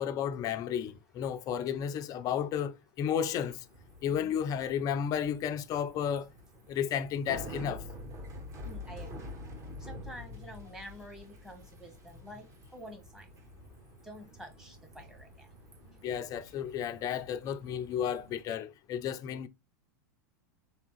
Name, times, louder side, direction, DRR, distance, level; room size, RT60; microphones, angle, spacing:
voice 1, 0.0-3.6 4.0-6.3 6.7-7.8 16.0-19.5, left 8 dB, 35° left, 0.4 m, -33 dB
Bicycle, 3.6-18.4, left 1 dB, 30° right, 1.2 m, -48 dB
voice 2, 4.1-4.4 8.7-9.3 9.8-12.5 12.7-13.2 14.1-15.3, equal, 5° right, 1.1 m, -48 dB
3.5 x 3.3 x 3.0 m
hypercardioid pair, 100°, 11 cm